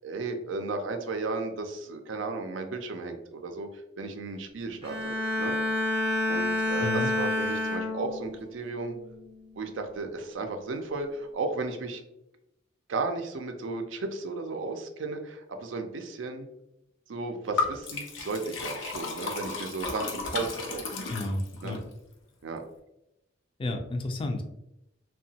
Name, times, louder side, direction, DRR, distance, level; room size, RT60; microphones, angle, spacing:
voice 1, 0.0-3.7 4.0-5.6 6.3-9.0 9.6-12.0 12.9-16.5 17.1-20.9 21.6-21.8 22.4-22.6, right 3 dB, 85° right, 5 dB, 0.4 m, -34 dB
Bowed string instrument, 4.8-8.4 8.9-9.2, left 1 dB, 30° right, 0.7 m, -29 dB
voice 2, 6.8-7.1 21.1-21.8 23.6-24.4, left 2 dB, 30° left, 5 dB, 0.3 m, -31 dB
Liquid, 17.6-21.8, left 4 dB, 85° left, 0.5 m, -34 dB
2.8 x 2.2 x 2.7 m, 0.86 s
head